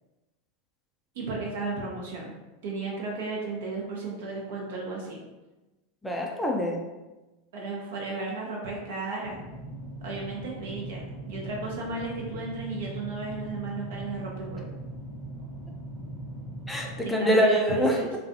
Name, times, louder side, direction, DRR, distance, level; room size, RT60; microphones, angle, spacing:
voice 1, 1.1-2.3 2.6-5.2 7.5-9.4 10.0-14.6 17.0-18.2, right 3 dB, 70° right, -2 dB, 0.7 m, -34 dB
voice 2, 6.0-6.8 16.7-18.2, equal, 5° left, 0 dB, 0.4 m, -25 dB
sound 1, 9.2-17.1, right 1 dB, 15° right, 0.8 m, -40 dB
2.4 x 2.3 x 2.6 m, 1.1 s
hypercardioid pair, 90°, 0 cm